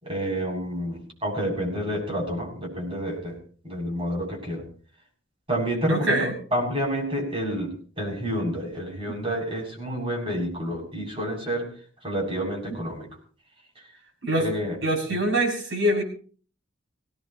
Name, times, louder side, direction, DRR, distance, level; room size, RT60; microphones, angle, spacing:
voice 1, 0.0-3.4 3.6-4.6 5.5-11.7 12.0-13.1 14.4-14.8 15.1-15.2, equal, 30° right, -2 dB, 7.5 m, -29 dB
voice 2, 5.9-6.3 9.1-9.2 14.2-14.5 14.8-16.0, right 1 dB, 70° right, 0 dB, 7.0 m, -24 dB
22.0 x 18.0 x 3.0 m, 0.42 s
head